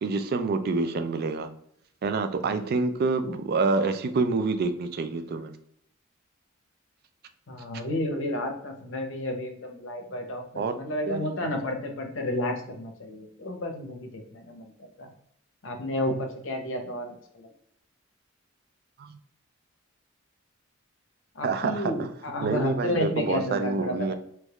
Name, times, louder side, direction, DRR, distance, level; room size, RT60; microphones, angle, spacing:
voice 1, 0.0-1.5 2.0-5.5 10.6-10.8 11.1-11.5 19.0-19.2 21.4-21.9 22.4-24.1, right 3 dB, 50° right, 9 dB, 0.3 m, -27 dB
voice 2, 7.5-15.1 15.6-17.5 21.3-24.1, left 1 dB, 65° left, 4 dB, 0.7 m, -32 dB
3.4 x 3.0 x 2.3 m, 0.70 s
head